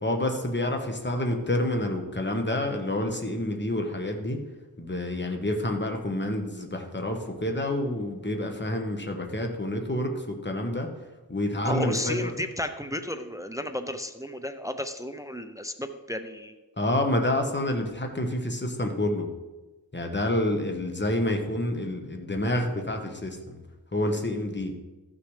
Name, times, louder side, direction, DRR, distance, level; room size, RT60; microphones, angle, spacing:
voice 1, 0.0-4.4 4.8-10.9 11.3-12.3 16.8-19.3 19.9-23.6 23.9-24.7, left 1 dB, 25° left, 3 dB, 1.2 m, -28 dB
voice 2, 11.7-16.5, left 1 dB, 10° right, 8 dB, 0.5 m, -33 dB
14.0 x 6.2 x 3.3 m, 1.2 s
wide cardioid pair, 55°, 41 cm